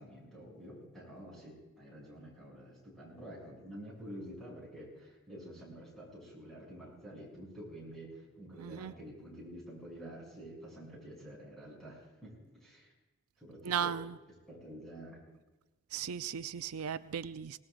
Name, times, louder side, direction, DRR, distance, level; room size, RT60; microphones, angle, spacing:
voice 1, 0.0-8.1 8.4-12.9 13.4-13.9 14.5-15.2, equal, ahead, -5 dB, 6.8 m, -49 dB
voice 2, 8.6-8.9 13.7-14.1 15.9-17.6, right 8 dB, 85° right, 12 dB, 0.5 m, -36 dB
24.5 x 18.5 x 2.5 m, 1.1 s
head